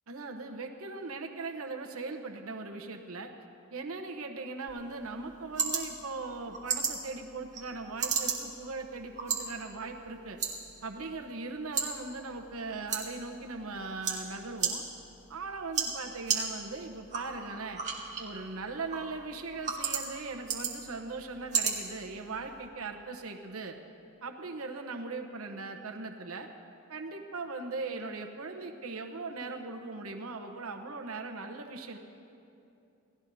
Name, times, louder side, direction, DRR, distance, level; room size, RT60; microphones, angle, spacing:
voice 1, 0.1-3.3 3.7-10.4 10.8-14.8 15.3-17.8 18.2-23.8 24.2-26.5 26.9-32.0, right 3 dB, 80° right, 3 dB, 1.0 m, -39 dB
sound 1, 4.7-22.7, right 6 dB, 35° right, 2.0 m, -37 dB
28.5 x 17.0 x 2.7 m, 2.7 s
head